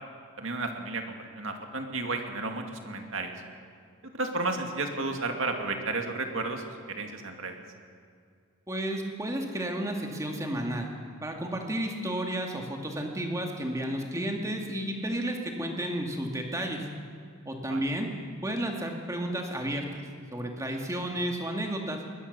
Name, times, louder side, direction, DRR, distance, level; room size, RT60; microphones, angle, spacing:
voice 1, 0.4-3.3 4.1-7.6 17.7-17.8, right 3 dB, 60° right, 4 dB, 2.4 m, -32 dB
voice 2, 8.7-10.9 11.2-16.9 17.5-18.1 18.4-20.0 20.3-22.0, right 1 dB, 15° right, 2 dB, 2.4 m, -32 dB
21.5 x 21.0 x 6.9 m, 2.2 s
head